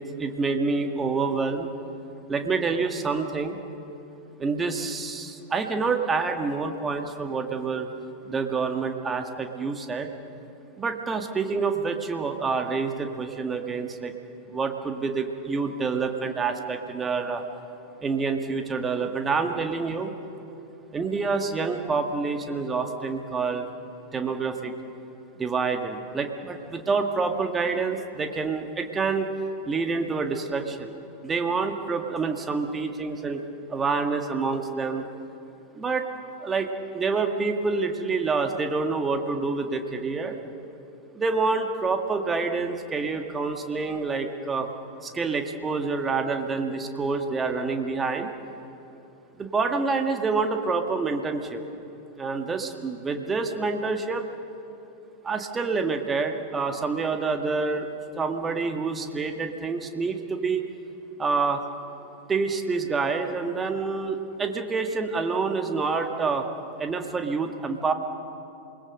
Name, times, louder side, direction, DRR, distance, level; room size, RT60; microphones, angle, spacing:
voice 1, 0.2-1.7 2.3-3.6 4.4-7.9 8.3-10.1 10.8-14.1 14.5-17.4 18.0-20.1 20.9-23.7 24.1-24.7 25.4-29.3 29.6-30.9 31.2-33.4 33.7-35.1 35.8-36.1 36.4-40.4 41.1-44.7 45.0-48.3 49.4-51.6 52.2-54.2 55.2-57.9 58.1-60.7 61.2-61.6 62.3-66.5 66.8-67.9, right 4 dB, 15° right, 5 dB, 1.8 m, -27 dB
28.0 x 21.0 x 6.6 m, 2.8 s
figure-of-eight pair, 90°, 0 cm